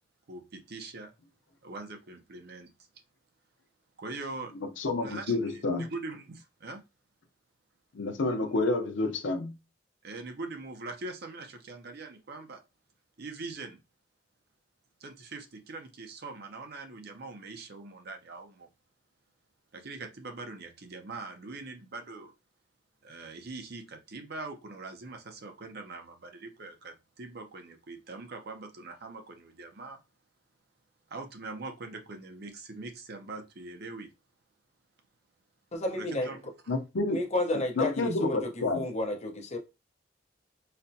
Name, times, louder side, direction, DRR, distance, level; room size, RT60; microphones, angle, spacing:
voice 1, 0.3-1.1 1.6-2.7 4.0-4.6 5.0-6.8 8.5-8.6 10.0-12.6 13.2-13.8 15.0-18.7 19.7-22.3 23.0-30.0 31.1-34.1 35.9-36.4, right 3 dB, 60° right, 0.7 m, -42 dB
voice 2, 4.8-5.9 7.9-9.5 36.7-37.2 37.8-38.8, left 2 dB, 85° left, 0.6 m, -29 dB
voice 3, 35.7-36.3 37.1-39.6, left 2 dB, 40° left, 0.8 m, -31 dB
4.1 x 2.1 x 2.7 m
head